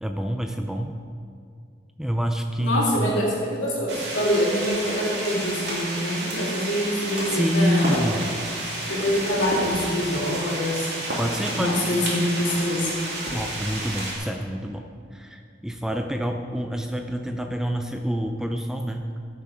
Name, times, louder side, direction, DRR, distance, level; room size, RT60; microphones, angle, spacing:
voice 1, 0.0-0.9 2.0-3.1 7.3-8.3 11.2-12.0 13.3-19.1, equal, 5° right, 4 dB, 0.4 m, -27 dB
voice 2, 2.6-8.0 8.9-10.9 11.5-12.9, equal, 75° left, -5 dB, 3.2 m, -25 dB
sound 1, 3.9-14.2, right 1 dB, 60° right, 2.9 m, -31 dB
15.0 x 7.0 x 4.9 m, 2.2 s
head